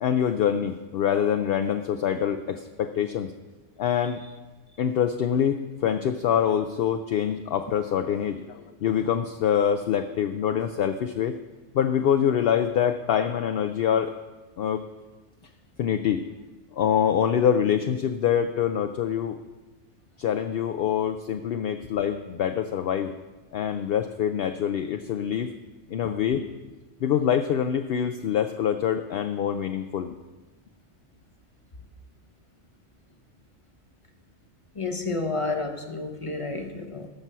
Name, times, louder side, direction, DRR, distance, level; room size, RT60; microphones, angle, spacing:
voice 1, 0.0-3.3 3.8-4.2 4.8-11.4 11.7-14.1 14.6-14.8 15.8-16.2 16.7-19.4 20.2-23.1 23.5-25.5 25.9-26.5 27.0-30.1, left 8 dB, 60° left, 7 dB, 0.7 m, -25 dB
voice 2, 34.8-37.1, left 3 dB, 30° left, 5 dB, 0.8 m, -30 dB
13.5 x 6.1 x 5.5 m, 1.2 s
omnidirectional pair, 1.2 m